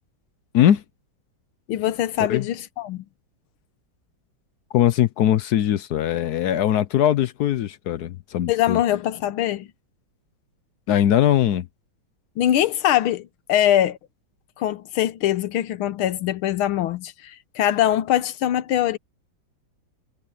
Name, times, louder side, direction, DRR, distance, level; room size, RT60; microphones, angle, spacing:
voice 1, 1.7-3.0 8.5-9.7 12.4-14.0 14.6-19.0, left 12 dB, 85° left, 1.7 m, -22 dB
voice 2, 4.7-8.8 10.9-11.7, left 11 dB, 70° left, 1.0 m, -20 dB
omnidirectional pair, 2.2 m